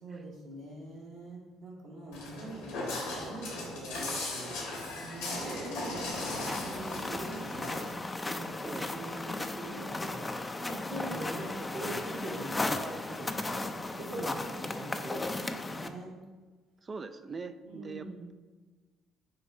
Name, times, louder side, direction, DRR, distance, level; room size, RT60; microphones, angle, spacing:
voice 1, 0.0-4.5 5.0-7.8 8.2-10.3 10.6-16.2 17.6-18.3, right 2 dB, 70° right, -5 dB, 1.9 m, -43 dB
Walk footsteps, 2.1-7.9, left 2 dB, 80° left, 1.6 m, -38 dB
sound 1, 6.1-15.9, left 2 dB, 20° left, 0.5 m, -36 dB
voice 2, 8.6-8.9 16.8-18.3, right 4 dB, 35° right, 10 dB, 0.4 m, -42 dB
6.6 x 2.6 x 5.5 m, 1.3 s
hypercardioid pair, 55°, 0 cm